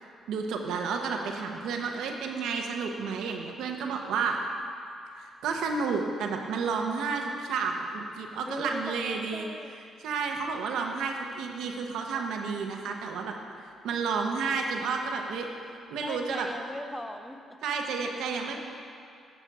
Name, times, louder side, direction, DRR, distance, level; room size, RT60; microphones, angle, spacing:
voice 1, 0.3-4.4 5.2-9.5 10.0-13.3 13.6-15.5 15.9-16.5 17.6-18.6, right 5 dB, 85° right, 3 dB, 0.9 m, -31 dB
voice 2, 8.5-9.8 16.0-17.6, left 1 dB, 10° left, 6 dB, 0.6 m, -39 dB
8.5 x 6.9 x 4.7 m, 2.5 s
cardioid pair, 90°, 0 cm